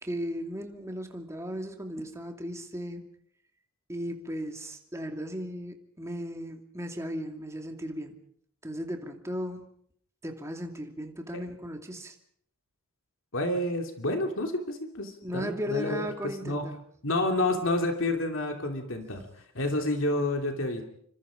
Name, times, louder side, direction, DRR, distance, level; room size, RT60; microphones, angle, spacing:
voice 1, 0.0-3.0 3.9-8.2 8.6-9.7 10.2-12.1 15.2-16.7, equal, 15° right, 4 dB, 2.6 m, -36 dB
voice 2, 13.3-16.7 17.0-19.3 19.5-20.8, left 1 dB, 65° left, 4 dB, 2.9 m, -29 dB
27.0 x 26.0 x 5.2 m, 0.65 s
head